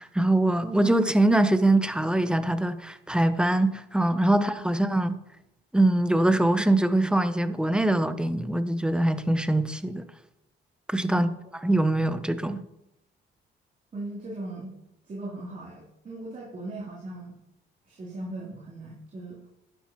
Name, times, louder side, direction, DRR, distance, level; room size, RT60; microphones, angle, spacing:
voice 1, 0.0-5.2 5.7-10.1 10.9-11.3 11.6-12.7, right 1 dB, 5° right, 0.8 m, -23 dB
voice 2, 13.9-14.7 15.0-17.4 17.8-19.4, right 2 dB, 40° right, 3.3 m, -38 dB
11.5 x 10.5 x 3.1 m
cardioid pair, 90°, 20 cm